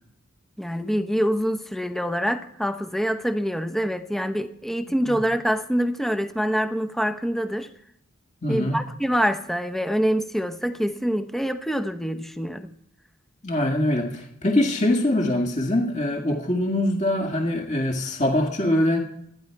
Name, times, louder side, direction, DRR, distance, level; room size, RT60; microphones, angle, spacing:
voice 1, 0.6-7.7 8.5-12.7, equal, ahead, 8 dB, 0.8 m, -25 dB
voice 2, 8.4-8.8 13.4-19.0, left 1 dB, 35° left, 2 dB, 1.9 m, -23 dB
28.0 x 10.0 x 4.7 m, 0.73 s
head